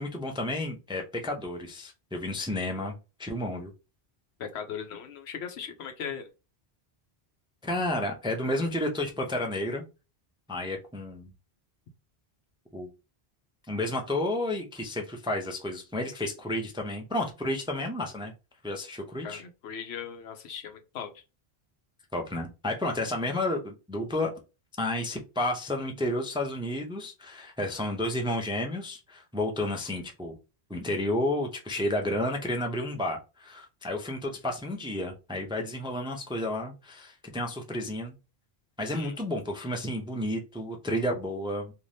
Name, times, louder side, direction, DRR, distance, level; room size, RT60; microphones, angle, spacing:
voice 1, 0.0-2.9 3.2-3.7 7.6-9.8 10.5-11.3 12.7-12.9 13.7-18.3 18.6-19.4 22.1-24.3 24.8-30.4 30.7-38.1 38.8-41.7, left 1 dB, 10° right, 3 dB, 0.3 m, -31 dB
voice 2, 4.4-6.3 19.2-21.2 38.9-39.2, left 7 dB, 85° left, 6 dB, 0.9 m, -38 dB
2.6 x 2.5 x 3.2 m, 0.29 s
omnidirectional pair, 1.1 m